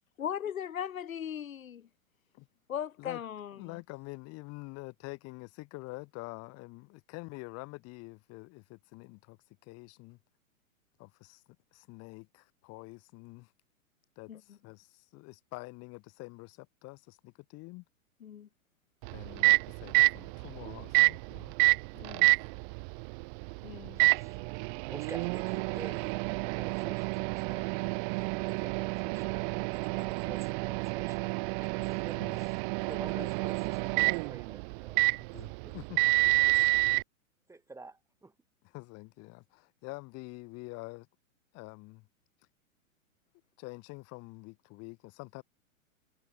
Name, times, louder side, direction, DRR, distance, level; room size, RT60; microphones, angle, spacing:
voice 1, 0.2-1.9 2.7-3.7 14.3-14.4 18.2-18.5 22.0-22.3 23.6-24.0, left 9 dB, 80° left, 2.4 m, -38 dB
voice 2, 3.6-10.2 11.0-11.4 11.7-13.5 14.2-17.9 19.1-21.5 21.9-22.3 29.2-29.3 32.2-32.4 35.2-36.0 38.6-41.1 41.5-42.1 43.6-45.4, left 25 dB, 35° left, 6.0 m, -46 dB
Microwave oven, 19.0-37.0, right 34 dB, 35° right, 1.1 m, -29 dB
voice 3, 24.0-24.4 24.9-26.2 26.5-35.7 36.4-36.7 37.5-38.3, right 3 dB, 5° right, 2.8 m, -50 dB
hypercardioid pair, 125°, 41 cm